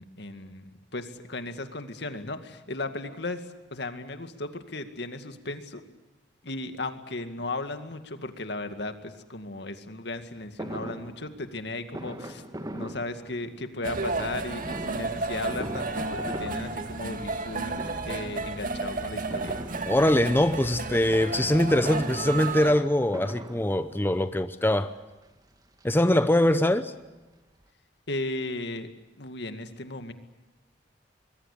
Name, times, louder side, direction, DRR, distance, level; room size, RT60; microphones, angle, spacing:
voice 1, 0.0-5.8 6.4-12.4 12.7-19.6 28.1-28.9 29.2-30.1, left 2 dB, 70° left, 2.2 m, -36 dB
Fireworks, 10.6-13.8 14.6-17.5 17.7-18.4 19.3-20.4 21.5-24.2 25.0-25.1 25.4-25.5 25.8-27.0 27.4-27.5 27.6-27.7, right 1 dB, 20° right, 1.8 m, -41 dB
sound 1, 13.8-22.7, right 3 dB, 50° right, 1.9 m, -32 dB
voice 2, 19.9-24.9 25.8-26.9, left 1 dB, 10° left, 0.8 m, -23 dB
25.5 x 22.0 x 8.6 m
head